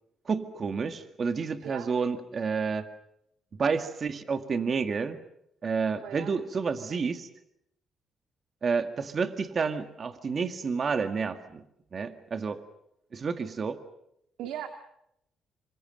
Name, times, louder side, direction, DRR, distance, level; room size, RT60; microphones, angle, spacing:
voice 1, 0.3-2.9 3.6-5.2 5.6-7.3 8.6-11.6 11.9-12.6 13.1-13.8, right 5 dB, 45° right, 9 dB, 1.8 m, -30 dB
voice 2, 5.9-6.3 6.9-7.0 14.4-14.7, right 10 dB, 85° right, 7 dB, 2.0 m, -39 dB
27.5 x 24.5 x 6.6 m, 0.79 s
cardioid pair, 90°, 0 cm